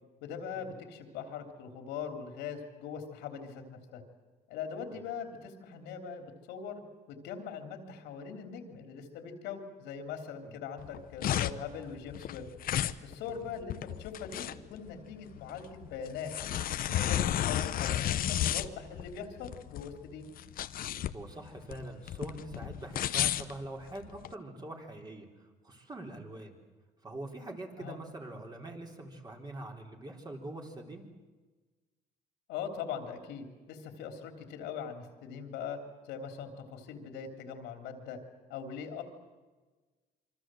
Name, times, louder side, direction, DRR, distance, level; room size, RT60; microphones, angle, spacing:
voice 1, 0.2-4.0 4.5-6.8 7.1-12.5 13.0-16.3 16.8-20.2 27.8-28.0 32.5-35.8 36.1-38.2 38.5-39.0, left 7 dB, 90° left, 6 dB, 3.5 m, -41 dB
sound 1, 10.8-24.3, left 11 dB, 60° left, 0.9 m, -33 dB
voice 2, 21.1-26.6 27.0-31.1, right 2 dB, 25° right, 2 dB, 3.9 m, -44 dB
26.0 x 24.5 x 7.8 m, 1.3 s
cardioid pair, 110°, 17 cm